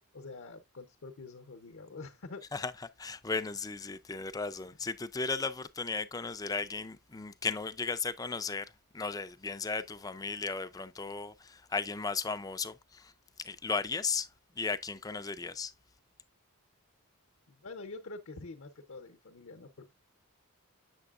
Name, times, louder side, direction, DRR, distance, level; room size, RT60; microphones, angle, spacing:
voice 1, 0.1-2.5 17.5-19.9, left 3 dB, 60° left, 0.8 m, -46 dB
voice 2, 3.0-13.1 13.4-14.3 14.6-15.7, left 4 dB, 15° left, 0.4 m, -35 dB
8.0 x 6.7 x 2.4 m
head